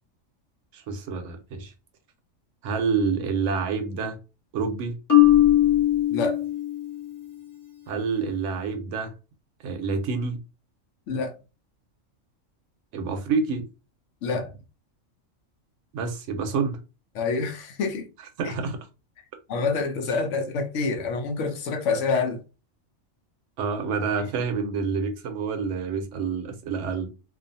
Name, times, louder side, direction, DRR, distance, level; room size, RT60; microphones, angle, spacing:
voice 1, 0.7-1.7 2.6-4.2 4.5-5.0 7.9-9.1 9.6-10.4 12.9-13.6 15.9-16.8 18.4-18.8 23.6-27.1, right 5 dB, 75° right, 0.9 m, -28 dB
Marimba xylophone, 5.1-7.1, left 13 dB, 20° left, 0.7 m, -19 dB
voice 2, 6.1-6.4 11.1-11.3 14.2-14.5 17.1-18.1 18.4-18.5 19.5-22.4, left 4 dB, 70° left, 0.9 m, -27 dB
2.5 x 2.3 x 2.6 m
omnidirectional pair, 1.3 m